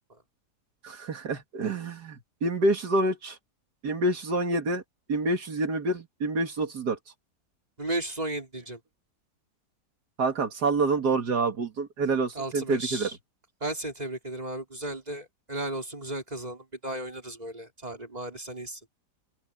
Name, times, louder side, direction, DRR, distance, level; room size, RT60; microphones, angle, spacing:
voice 1, 0.8-3.4 3.8-4.8 5.1-7.0 10.2-13.1, right 2 dB, 80° right, 2.6 m, -27 dB
voice 2, 7.8-8.8 12.3-13.2 13.6-18.8, right 1 dB, 25° right, 5.1 m, -35 dB
open air
omnidirectional pair, 1.7 m